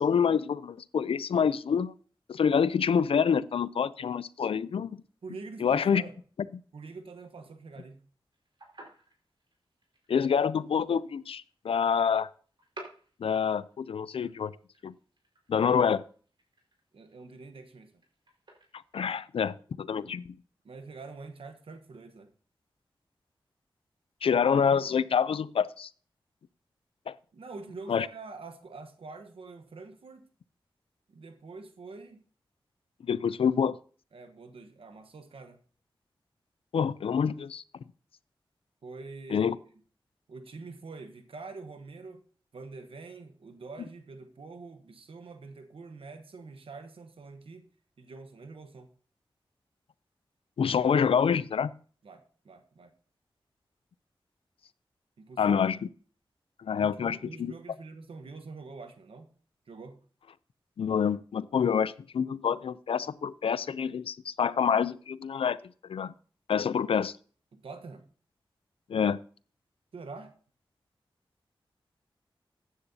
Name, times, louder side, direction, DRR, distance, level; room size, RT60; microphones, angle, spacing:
voice 1, 0.0-1.9 2.3-4.9 5.6-6.0 10.1-12.3 13.2-14.5 14.8-14.9 15.5-16.0 18.9-20.4 24.2-25.9 27.1-27.2 27.9-28.1 33.0-33.8 36.7-37.6 39.3-39.6 50.6-51.7 55.4-55.9 56.6-57.5 60.8-65.6 65.8-66.1 66.5-67.1 68.9-69.2, left 7 dB, 85° left, 18 dB, 0.4 m, -27 dB
voice 2, 5.2-6.2 6.7-8.1 16.9-17.9 20.6-22.3 27.3-30.3 31.1-32.2 34.1-35.6 38.8-39.6 40.3-42.3 42.5-47.7 48.0-48.9 52.0-52.9 55.2-55.6 56.8-59.3 59.7-60.0 67.5-68.1 69.9-70.3, right 3 dB, 85° right, 7 dB, 1.1 m, -45 dB
sound 1, 8.3-19.0, right 2 dB, 60° right, 4.6 m, -54 dB
15.0 x 9.9 x 2.7 m, 0.43 s
wide cardioid pair, 60°, 9 cm